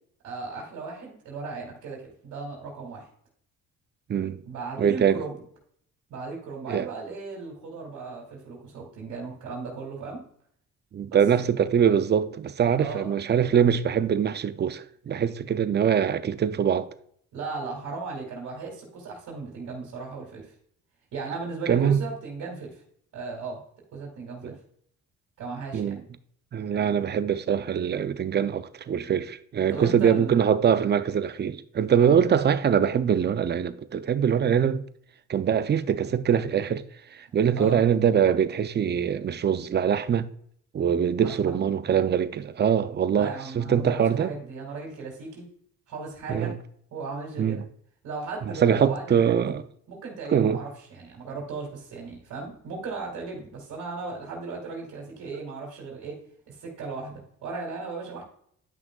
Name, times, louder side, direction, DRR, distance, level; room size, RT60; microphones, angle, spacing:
voice 1, 0.2-3.1 4.4-5.4 6.1-10.2 11.1-11.2 12.8-13.1 17.3-20.5 21.1-22.8 23.1-23.6 23.9-24.6 25.4-26.0 29.7-30.4 32.0-32.1 37.6-37.8 41.2-41.5 43.1-45.5 45.9-46.6 46.9-47.6 48.0-49.5 49.9-58.2, right 4 dB, 75° right, 2.4 m, -36 dB
voice 2, 4.1-4.4 4.8-5.2 6.7-6.9 10.9-16.9 21.7-22.0 24.4-24.5 25.7-26.0 26.5-34.8 35.3-36.8 37.1-40.3 40.7-44.3 46.3-46.5 47.4-47.6 48.6-49.6 50.3-50.6, right 8 dB, 35° right, 0.5 m, -23 dB
10.5 x 6.0 x 2.4 m
cardioid pair, 90°, 30 cm